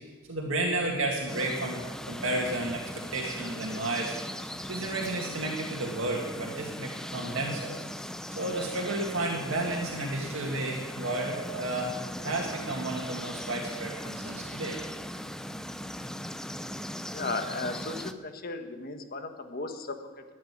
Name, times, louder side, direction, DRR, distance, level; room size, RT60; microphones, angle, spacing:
voice 1, 0.3-1.8 2.1-2.8 3.1-4.2 4.7-7.8 8.3-12.0 12.2-14.8, right 2 dB, 80° right, -1 dB, 2.0 m, -32 dB
sound 1, 1.3-18.1, equal, 5° left, 0.6 m, -39 dB
voice 2, 17.1-20.2, left 3 dB, 50° left, 6 dB, 1.4 m, -36 dB
13.0 x 9.5 x 9.6 m, 1.4 s
head